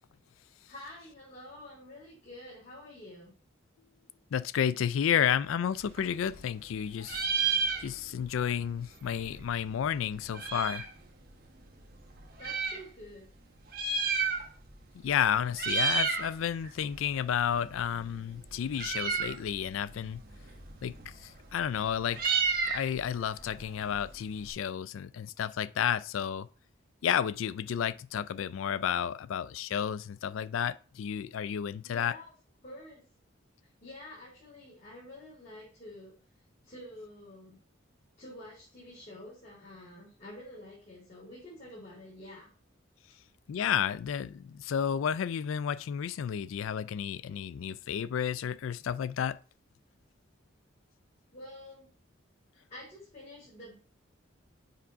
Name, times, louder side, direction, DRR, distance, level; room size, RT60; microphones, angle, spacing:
voice 1, 0.7-3.3 12.4-13.3 31.8-32.2 32.6-33.0 33.6-36.1 36.6-37.6 38.2-42.5 51.3-51.9 52.7-53.8, left 1 dB, 35° left, 3.5 m, -48 dB
voice 2, 4.3-10.9 15.0-20.2 20.8-22.4 22.6-26.5 27.0-32.1 43.5-49.4, left 8 dB, 80° left, 0.3 m, -31 dB
Meow, 5.8-6.7 7.0-8.3 8.6-8.7 8.8-11.0 11.6-12.8 13.6-14.8 15.0-15.3 15.5-16.3 16.6-24.5, right 5 dB, 45° right, 1.1 m, -32 dB
7.2 x 3.5 x 5.0 m
head